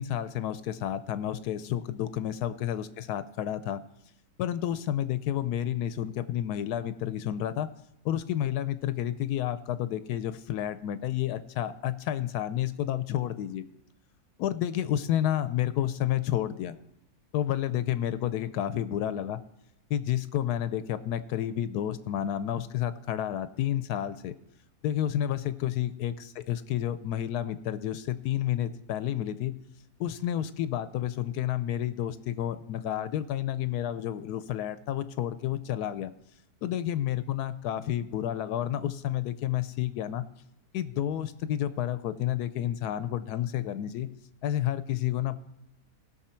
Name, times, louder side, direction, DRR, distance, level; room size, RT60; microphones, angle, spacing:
voice 1, 0.0-3.8 4.4-7.7 8.0-13.6 14.4-16.8 17.3-19.4 19.9-24.4 24.8-29.5 30.0-36.1 36.6-40.3 40.7-44.1 44.4-45.4, left 11 dB, 85° left, 13 dB, 1.1 m, -30 dB
17.5 x 6.2 x 4.4 m, 0.86 s
omnidirectional pair, 1.6 m